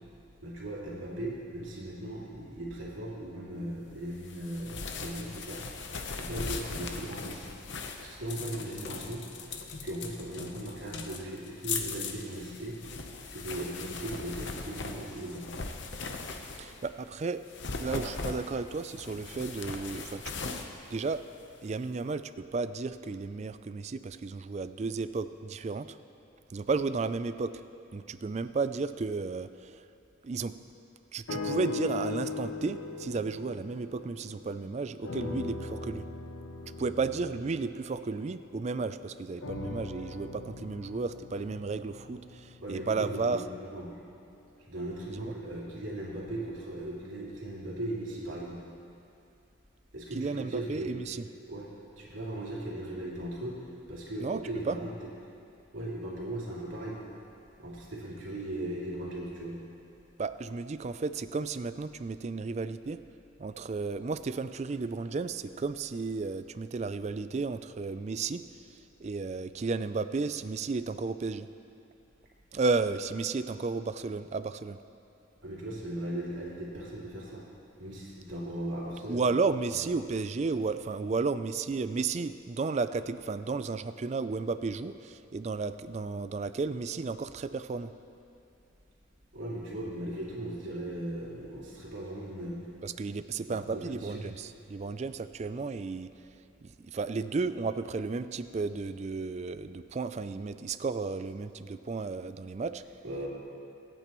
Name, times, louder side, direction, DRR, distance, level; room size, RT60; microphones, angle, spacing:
voice 1, 0.4-7.5 8.0-9.2 9.8-12.8 13.2-15.5 42.6-44.0 44.7-48.6 49.9-50.9 51.5-51.7 52.0-54.9 55.7-57.0 57.6-59.6 75.4-77.4 77.8-79.2 79.7-79.9 89.3-92.7 93.5-94.2 103.0-103.3, right 1 dB, 80° right, -5 dB, 2.7 m, -38 dB
sound 1, 4.2-16.9 17.4-21.7, left 4 dB, 65° left, 0.9 m, -39 dB
voice 2, 16.6-17.4 17.8-20.2 20.9-21.2 21.6-26.0 26.5-27.6 27.9-29.8 30.2-30.5 31.1-36.1 36.8-43.4 45.1-45.3 50.1-51.2 54.2-54.4 54.7-54.8 60.2-63.0 63.4-68.4 68.7-71.5 72.5-74.8 79.1-87.9 92.8-96.1 96.6-102.8, right 4 dB, 35° right, 12 dB, 0.3 m, -33 dB
sound 2, 31.3-34.6 35.0-38.8 39.4-43.6 44.3-44.4, left 3 dB, 85° left, 1.0 m, -39 dB
24.5 x 9.1 x 3.1 m, 2.6 s
head